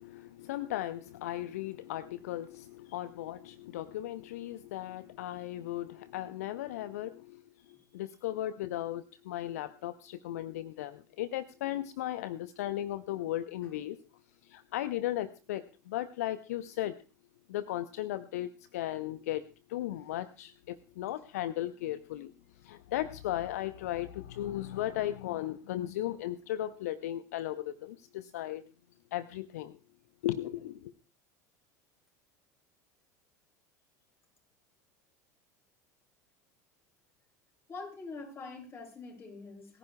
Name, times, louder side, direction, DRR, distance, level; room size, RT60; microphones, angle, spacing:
voice 1, 0.0-7.4 7.7-14.0 14.4-17.0 17.5-19.4 19.7-22.3 22.6-28.6 29.1-29.7 30.2-30.9, left 13 dB, 60° left, 14 dB, 0.7 m, -36 dB
voice 2, 37.7-39.8, left 3 dB, 25° left, 2 dB, 6.8 m, -44 dB
22.5 x 15.0 x 2.2 m, 0.34 s
figure-of-eight pair, 75°, 9 cm